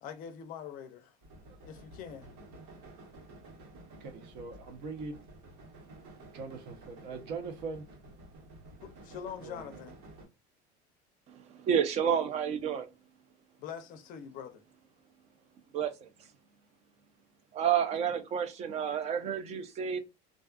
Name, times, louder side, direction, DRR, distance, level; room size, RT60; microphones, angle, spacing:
voice 1, 0.0-1.1 1.6-2.3 8.8-9.9 13.6-14.6, left 8 dB, 45° left, 0.4 m, -43 dB
sound 1, 1.2-10.3, right 2 dB, 85° right, 1.3 m, -52 dB
voice 2, 4.0-5.2 6.3-7.9 9.4-9.8, right 4 dB, 65° right, 0.8 m, -42 dB
voice 3, 11.3-12.9 15.7-16.1 17.5-20.0, right 8 dB, 35° right, 0.4 m, -30 dB
2.5 x 2.2 x 2.3 m
cardioid pair, 145°, 19 cm